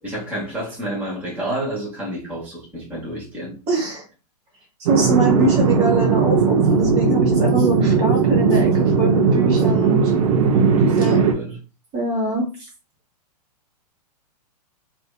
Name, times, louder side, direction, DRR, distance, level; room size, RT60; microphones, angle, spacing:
voice 1, 0.0-3.6 10.5-11.6, right 1 dB, 10° right, 1.0 m, -30 dB
voice 2, 3.7-4.0 4.9-10.1 11.0-11.3 11.9-12.5, right 2 dB, 30° right, 1.1 m, -23 dB
sound 1, 4.9-11.3, right 5 dB, 55° right, 0.6 m, -17 dB
2.6 x 2.4 x 2.3 m
hypercardioid pair, 115°, 21 cm